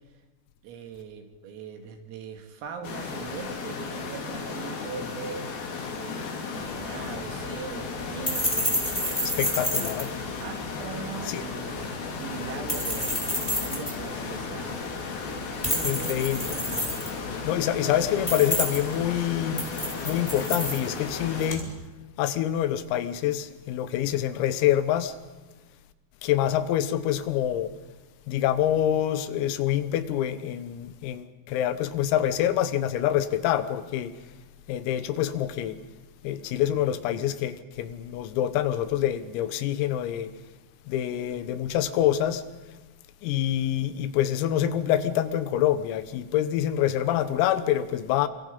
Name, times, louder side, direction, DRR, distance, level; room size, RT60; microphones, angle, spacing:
voice 1, 0.6-5.5 5.9-9.7 10.4-14.9 15.6-17.1, right 6 dB, 80° right, 5.0 m, -41 dB
sound 1, 2.8-21.5, left 5 dB, 50° left, 4.1 m, -35 dB
sound 2, 6.6-21.7, equal, 5° left, 2.7 m, -32 dB
voice 2, 9.2-10.1 11.3-11.4 15.8-16.5 17.4-19.7 20.1-21.7 22.2-25.2 26.2-27.7 28.3-34.1 34.7-35.8 36.2-40.3 40.9-42.4 43.2-48.3, left 11 dB, 90° left, 3.9 m, -26 dB
28.5 x 24.5 x 5.5 m
omnidirectional pair, 5.9 m